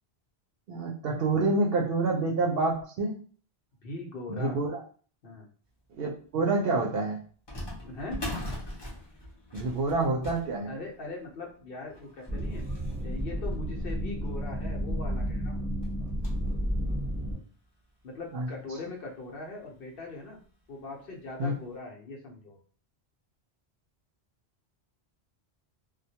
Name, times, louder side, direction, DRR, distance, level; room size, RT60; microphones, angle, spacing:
voice 1, 0.7-3.2 4.4-4.8 6.0-7.2 9.5-10.7 18.3-18.5 21.4-21.5, right 3 dB, 70° right, 0 dB, 0.7 m, -27 dB
voice 2, 3.8-4.6 5.2-5.5 7.8-8.3 10.7-12.6 13.0-15.6 18.0-20.4 20.7-22.6, left 3 dB, 65° left, 0 dB, 0.8 m, -40 dB
sound 1, 6.0-6.1 7.5-14.4 15.0-15.1 15.3-15.4 15.8-16.5 17.1-17.2 18.0-18.1 18.5-18.6 20.0-20.2 20.6-20.7 21.3-21.5, left 1 dB, 30° left, 0.6 m, -42 dB
sound 2, 12.3-17.4, equal, 15° right, 0.9 m, -31 dB
2.2 x 2.1 x 2.7 m, 0.42 s
omnidirectional pair, 1.1 m